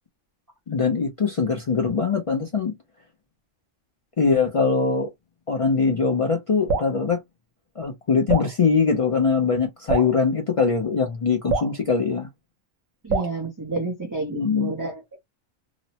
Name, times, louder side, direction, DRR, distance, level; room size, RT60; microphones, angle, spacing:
voice 1, 0.7-2.7 4.2-5.1 5.5-7.2 7.8-12.3 14.3-14.7, left 5 dB, 65° left, 0.3 m, -22 dB
Drip, 6.7-7.0 8.3-8.5 9.9-10.2 11.5-11.8 13.1-13.4, right 4 dB, 75° right, 1.1 m, -24 dB
voice 2, 13.0-15.2, right 3 dB, 20° right, 0.5 m, -30 dB
2.9 x 2.0 x 2.7 m
omnidirectional pair, 1.4 m